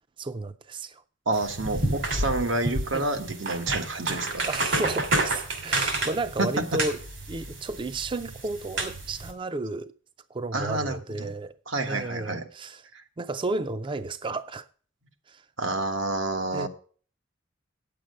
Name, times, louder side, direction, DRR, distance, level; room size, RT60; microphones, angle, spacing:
voice 1, 0.2-1.0 2.9-3.0 4.4-7.0 7.3-9.9 10.3-11.5 11.9-12.8 13.2-14.7 15.3-15.4 16.5-16.7, right 2 dB, 25° right, 0.4 m, -32 dB
sound 1, 1.3-9.3, right 2 dB, 70° right, 2.7 m, -30 dB
voice 2, 1.3-4.4 6.4-6.8 10.5-11.3 11.7-12.5 12.9-13.0 15.6-16.7, right 2 dB, 85° right, 1.5 m, -29 dB
9.4 x 7.6 x 6.3 m
head